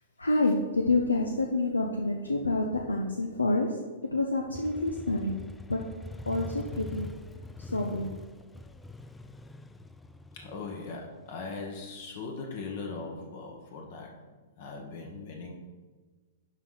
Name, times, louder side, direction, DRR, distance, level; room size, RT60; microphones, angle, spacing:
voice 1, 0.2-3.8 4.1-5.4 5.7-5.8 6.2-7.1 7.6-8.2, left 2 dB, 85° left, 1 dB, 0.7 m, -28 dB
Motorcycle, 4.5-12.2, left 2 dB, 10° left, 0.4 m, -44 dB
voice 2, 10.3-14.2 14.6-15.5, left 4 dB, 55° left, 1 dB, 1.4 m, -39 dB
11.0 x 4.2 x 4.0 m, 1.4 s
figure-of-eight pair, 110°, 0 cm